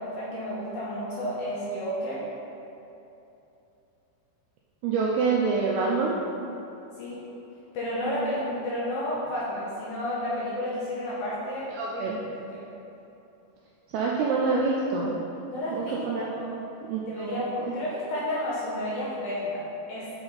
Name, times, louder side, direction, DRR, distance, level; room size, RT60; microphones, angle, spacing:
voice 1, 0.0-2.2 7.0-7.2 7.7-12.7 15.5-16.0 16.3-16.5 17.0-20.1, left 1 dB, 75° left, -7 dB, 2.3 m, -31 dB
voice 2, 4.8-6.2 11.8-12.2 13.9-15.1 15.7-16.6 16.9-17.4, right 4 dB, 85° right, -3 dB, 2.3 m, -26 dB
7.8 x 4.2 x 3.9 m, 2.9 s
omnidirectional pair, 5.1 m